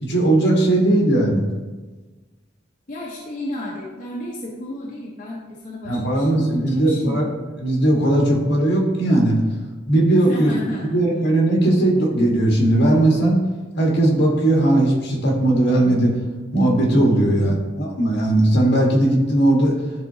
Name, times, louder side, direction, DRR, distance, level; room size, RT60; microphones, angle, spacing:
voice 1, 0.0-1.4 5.8-7.3 7.6-9.4 9.9-10.5 10.8-13.4 13.8-16.1 16.5-19.7, right 1 dB, 60° left, -1 dB, 1.4 m, -18 dB
voice 2, 2.9-7.2 10.2-11.0 17.2-17.8, left 1 dB, 40° left, -5 dB, 0.9 m, -32 dB
10.5 x 3.9 x 2.7 m, 1.3 s
head